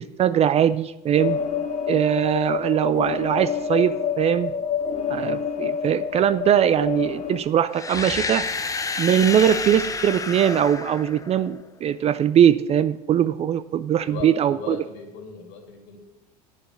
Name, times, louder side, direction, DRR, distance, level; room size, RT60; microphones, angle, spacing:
voice 1, 0.0-1.4 1.9-4.5 5.1-8.5 9.0-14.8, right 9 dB, 30° right, 15 dB, 0.4 m, -21 dB
sound 1, 1.2-7.4, left 7 dB, 40° left, 1.3 m, -27 dB
sound 2, 7.7-11.7, left 4 dB, 15° left, 0.8 m, -29 dB
voice 2, 14.0-16.0, left 6 dB, 60° left, 2 dB, 2.8 m, -37 dB
8.9 x 7.1 x 6.6 m, 0.99 s
hypercardioid pair, 95°, 21 cm